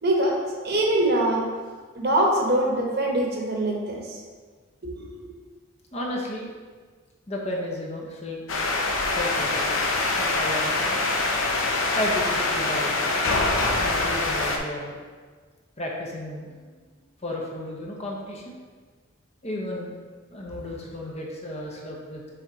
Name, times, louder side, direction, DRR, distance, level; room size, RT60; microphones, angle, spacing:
voice 1, 0.0-0.4 0.6-1.4 1.9-4.2 4.8-5.3, right 1 dB, 50° right, -1 dB, 1.1 m, -23 dB
voice 2, 5.9-6.5 7.3-8.5 9.1-9.7 10.2-11.0 11.9-13.1 13.8-15.0 15.8-16.5 17.2-18.5 19.4-19.9 20.3-22.2, left 1 dB, 30° left, -1 dB, 0.8 m, -33 dB
sound 1, 8.5-14.6, left 2 dB, 75° left, 0.7 m, -24 dB
6.9 x 3.6 x 4.0 m, 1.5 s
head